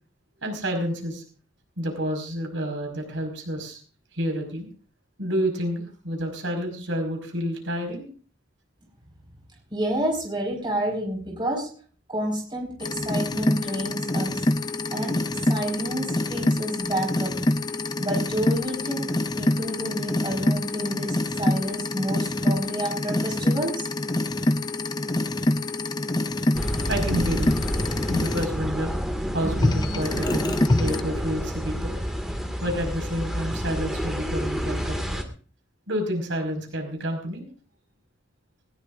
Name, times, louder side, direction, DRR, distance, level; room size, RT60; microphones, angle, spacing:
voice 1, 0.4-1.2 1.8-3.8 4.1-4.7 5.2-8.1 26.9-27.5 28.1-28.9 29.3-32.0 32.6-35.2 35.9-37.4, equal, 80° right, 3 dB, 5.1 m, -29 dB
voice 2, 9.7-11.7 12.1-14.5 14.9-15.2 15.5-17.4 18.0-23.9, right 1 dB, 25° right, 1 dB, 4.8 m, -29 dB
sound 1, 12.8-28.4 29.6-31.0, left 2 dB, 20° left, 0.6 m, -26 dB
sound 2, 26.5-35.2, equal, ahead, 1.9 m, -29 dB
19.5 x 19.0 x 2.5 m, 0.40 s
head